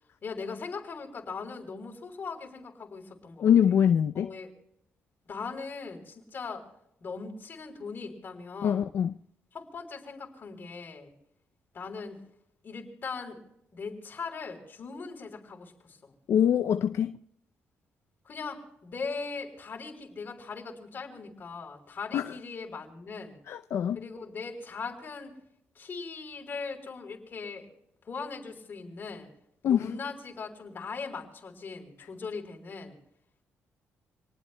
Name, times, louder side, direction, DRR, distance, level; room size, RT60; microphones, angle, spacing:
voice 1, 0.2-3.5 4.1-4.5 5.3-6.7 7.0-8.9 9.5-11.1 11.7-12.2 12.6-13.4 13.7-16.1 18.3-23.4 23.9-25.4 25.8-27.7 28.1-29.3 29.6-33.0, left 4 dB, 45° left, 3.6 m, -39 dB
voice 2, 3.4-4.3 8.6-9.1 16.3-17.1 22.1-22.3 23.5-24.0 29.6-29.9, left 9 dB, 65° left, 0.5 m, -24 dB
27.5 x 19.5 x 2.2 m
cardioid pair, 110°, 5 cm